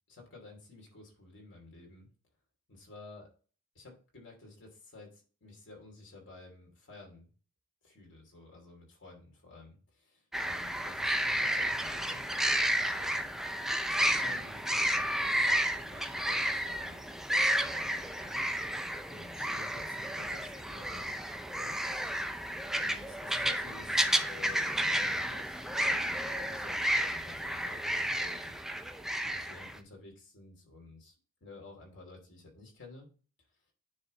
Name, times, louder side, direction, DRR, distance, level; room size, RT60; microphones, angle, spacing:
voice 1, 0.1-2.1 2.7-3.3 3.7-7.3 7.8-12.3 12.8-13.3 13.9-17.0 17.4-21.9 22.8-28.6 29.2-31.1 31.4-33.1, left 3 dB, 55° left, 0 dB, 2.7 m, -52 dB
sound 1, 10.3-29.8, equal, ahead, 0.4 m, -32 dB
9.5 x 3.3 x 3.8 m, 0.39 s
head